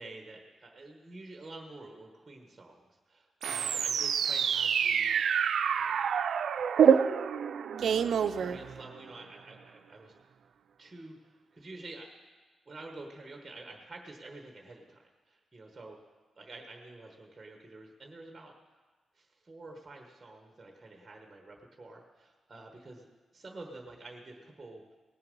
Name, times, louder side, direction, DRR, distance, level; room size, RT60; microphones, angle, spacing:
voice 1, 0.0-5.2 5.7-6.2 8.2-10.1 10.8-12.1 12.6-16.0 16.4-18.6 19.1-23.1 23.3-25.0, right 2 dB, 15° right, 2 dB, 1.3 m, -49 dB
sound 1, 3.4-9.1, right 7 dB, 70° right, 0.4 m, -27 dB
18.5 x 6.9 x 5.3 m, 1.3 s
wide cardioid pair, 140°, 0 cm